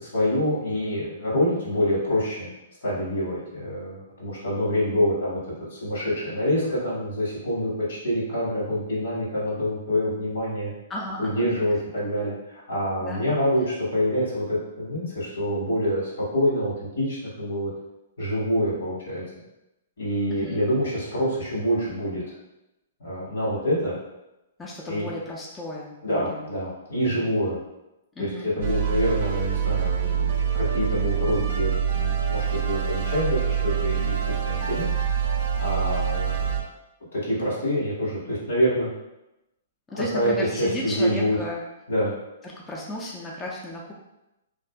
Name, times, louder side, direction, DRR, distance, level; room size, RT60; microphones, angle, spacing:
voice 1, 0.0-2.5 2.8-5.4 5.7-10.7 11.2-17.7 18.2-19.2 20.0-22.3 23.0-24.0 24.9-25.1 26.0-27.6 28.2-34.9 35.3-36.6 37.1-38.9 39.9-40.3 40.6-41.4 41.9-42.1, equal, 80° left, -5 dB, 1.3 m, -26 dB
voice 2, 10.9-11.5 13.0-13.3 20.3-20.6 24.6-26.5 28.2-28.5 39.9-41.6 42.4-43.9, left 1 dB, 15° left, -3 dB, 0.4 m, -34 dB
sound 1, 28.6-36.6, right 7 dB, 60° right, 0.4 m, -25 dB
2.6 x 2.5 x 2.3 m, 0.93 s
hypercardioid pair, 135°, 0 cm